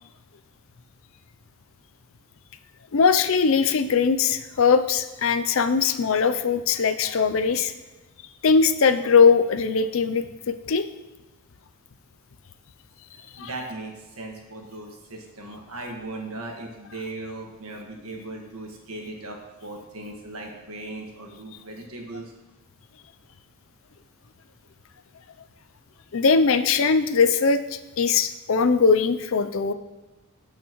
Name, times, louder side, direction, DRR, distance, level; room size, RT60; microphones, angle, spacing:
voice 1, 2.9-7.7 8.4-10.9 13.4-13.5 26.1-27.6 28.0-29.7, left 5 dB, 60° left, 10 dB, 0.5 m, -20 dB
voice 2, 13.4-22.3, right 2 dB, 75° right, 1 dB, 1.6 m, -38 dB
14.5 x 5.8 x 3.1 m, 1.1 s
head